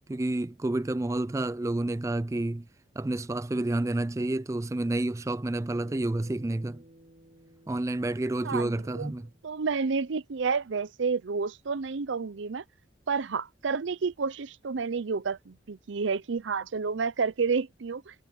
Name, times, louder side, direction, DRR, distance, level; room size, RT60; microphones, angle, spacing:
voice 1, 0.0-2.7 3.0-6.8 7.7-9.3, right 2 dB, 15° right, 0.3 m, -29 dB
Bass guitar, 5.7-10.1, right 1 dB, 45° right, 7.0 m, -56 dB
voice 2, 8.4-9.1 9.4-12.6 13.1-18.1, right 5 dB, 80° right, 0.6 m, -30 dB
head